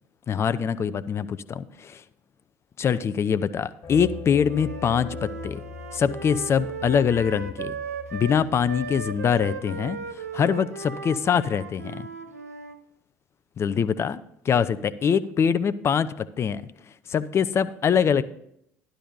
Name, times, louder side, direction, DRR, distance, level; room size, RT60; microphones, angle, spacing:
voice 1, 0.3-2.0 2.8-5.6 5.9-7.8 8.1-12.1 13.6-14.2 14.4-16.6 16.9-18.2, left 7 dB, 35° left, 15 dB, 0.5 m, -24 dB
sound 1, 3.8-10.4, left 5 dB, 50° left, 1.1 m, -41 dB
Wind instrument woodwind instrument, 4.4-12.8, right 5 dB, 85° right, 0.6 m, -37 dB
12.0 x 11.0 x 2.7 m, 0.74 s
figure-of-eight pair, 60°, 8 cm